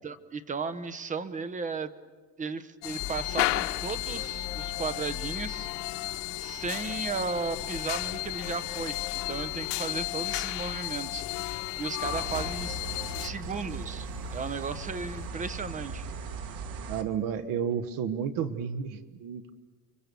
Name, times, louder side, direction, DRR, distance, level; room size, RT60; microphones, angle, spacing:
voice 1, 0.0-1.9 2.4-5.7 6.4-12.8 13.2-16.1, right 4 dB, 20° right, 12 dB, 1.0 m, -35 dB
sound 1, 2.8-13.3, left 18 dB, 75° left, 1.5 m, -33 dB
sound 2, 3.0-15.3, left 9 dB, 30° left, 1.7 m, -44 dB
sound 3, 12.0-17.0, right 4 dB, 75° right, 2.2 m, -38 dB
voice 2, 16.9-19.5, right 7 dB, 55° right, 11 dB, 1.4 m, -31 dB
30.0 x 24.0 x 7.0 m, 1.4 s
cardioid pair, 150°, 40 cm